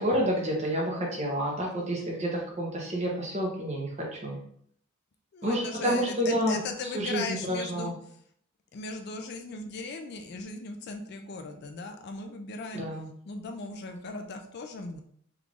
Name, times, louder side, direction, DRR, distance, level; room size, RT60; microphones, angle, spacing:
voice 1, 0.0-3.9 4.2-4.4 5.4-6.6 6.9-7.9 12.7-13.1, equal, 30° right, -2 dB, 0.9 m, -29 dB
voice 2, 5.3-8.2 8.7-12.9 13.3-15.0, left 3 dB, 50° left, 5 dB, 0.3 m, -38 dB
3.6 x 3.2 x 2.4 m, 0.64 s
head